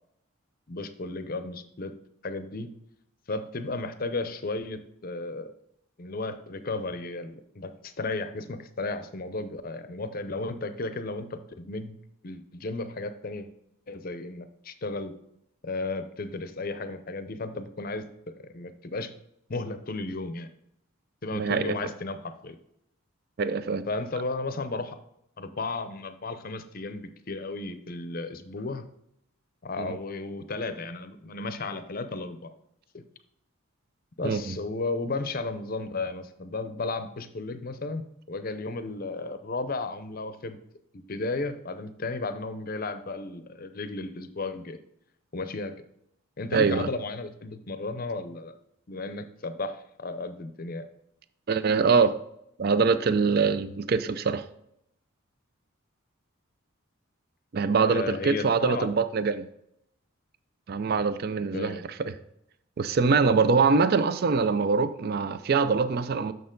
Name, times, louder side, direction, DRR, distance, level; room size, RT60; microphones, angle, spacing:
voice 1, 0.7-1.9 2.2-2.7 3.3-5.5 6.0-12.0 12.2-13.5 13.9-15.1 15.6-18.1 18.4-19.1 19.5-20.5 21.2-22.6 23.9-25.0 25.4-28.8 29.6-32.5 32.9-33.0 34.2-40.6 40.9-44.8 45.3-45.7 46.4-48.5 48.9-50.9 57.8-58.9 61.5-61.8, left 3 dB, 45° left, 0.6 m, -34 dB
voice 2, 21.3-21.8 23.4-23.8 29.8-30.0 34.2-34.6 46.5-46.9 51.5-52.2 52.6-54.4 57.5-59.5 60.7-62.1 62.8-66.3, right 5 dB, 45° right, 0.4 m, -24 dB
6.7 x 6.6 x 3.8 m
head